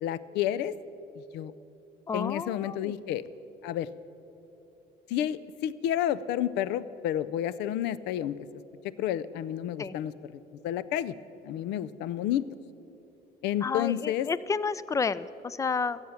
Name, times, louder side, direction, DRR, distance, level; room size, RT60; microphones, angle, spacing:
voice 1, 0.0-0.7 1.3-1.5 2.1-3.3 3.6-3.9 5.1-8.4 9.0-10.1 10.6-11.1 11.4-12.5 13.4-14.3, left 11 dB, 85° left, 17 dB, 0.5 m, -30 dB
voice 2, 2.1-2.9 9.8-10.0 13.6-16.0, left 5 dB, 20° left, 18 dB, 0.4 m, -31 dB
15.5 x 7.2 x 8.9 m, 2.9 s
cardioid pair, 110°, 17 cm